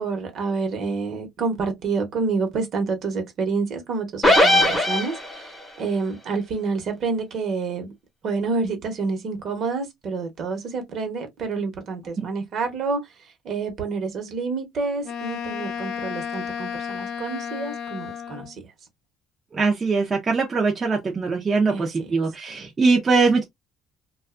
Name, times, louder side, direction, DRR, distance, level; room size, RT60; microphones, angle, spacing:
voice 1, 0.0-7.9 8.2-18.6 21.7-22.1, right 4 dB, 50° right, 1.0 m, -28 dB
sound 1, 4.2-5.6, left 1 dB, 15° left, 0.8 m, -18 dB
Wind instrument woodwind instrument, 15.0-18.6, left 7 dB, 60° left, 0.5 m, -32 dB
voice 2, 19.5-23.4, right 4 dB, 25° right, 0.6 m, -21 dB
2.6 x 2.3 x 2.4 m
cardioid pair, 135°, 0 cm